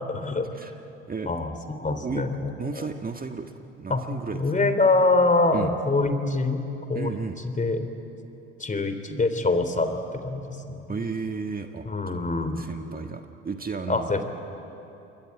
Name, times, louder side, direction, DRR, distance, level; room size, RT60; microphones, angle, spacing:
voice 1, 0.1-0.5 1.2-2.9 3.9-4.0 4.3-6.6 6.9-7.8 8.6-10.9 11.8-12.6 13.9-14.2, left 3 dB, 25° left, 9 dB, 3.4 m, -25 dB
voice 2, 2.6-4.4 5.5-5.7 6.9-7.4 10.9-12.2 12.6-14.1, right 5 dB, 25° right, 5 dB, 1.7 m, -33 dB
28.0 x 23.0 x 9.0 m, 3.0 s
hypercardioid pair, 65°, 33 cm